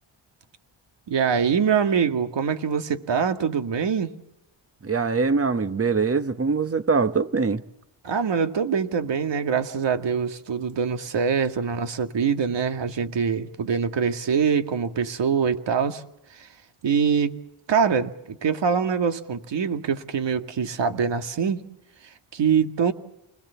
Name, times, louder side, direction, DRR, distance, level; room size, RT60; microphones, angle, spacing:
voice 1, 1.1-4.1 8.0-16.0 16.4-16.5 16.8-17.4 17.7-21.6 22.3-22.9, right 6 dB, 60° right, 2.0 m, -24 dB
voice 2, 4.8-7.6, right 4 dB, 30° right, 1.3 m, -23 dB
28.5 x 21.0 x 7.0 m
cardioid pair, 90°, 49 cm